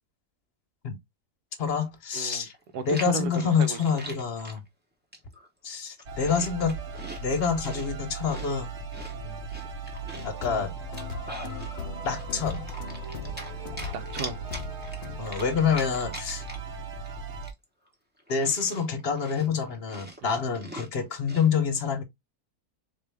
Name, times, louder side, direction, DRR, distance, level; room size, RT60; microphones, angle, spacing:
voice 1, 1.6-2.5 2.9-4.6 5.6-6.8 7.2-8.7 10.2-10.7 12.0-12.7 15.2-16.4 18.3-22.0, left 6 dB, 45° left, 1.0 m, -27 dB
Chewing mastication, 1.9-2.0 2.3-4.6 5.1-5.5 5.8-7.9 8.2-10.4 10.8-11.7 12.1-13.5 13.8-16.8 17.0-17.1 17.4-21.5, equal, 10° right, 0.7 m, -42 dB
voice 2, 2.1-2.5 2.7-3.8 9.1-9.5 13.4-14.4 20.2-20.4, right 5 dB, 90° right, 1.3 m, -35 dB
sound 1, 6.1-17.5, right 4 dB, 55° right, 0.8 m, -38 dB
sound 2, 10.1-15.2, left 7 dB, 75° left, 0.5 m, -40 dB
4.1 x 2.6 x 3.2 m
omnidirectional pair, 1.6 m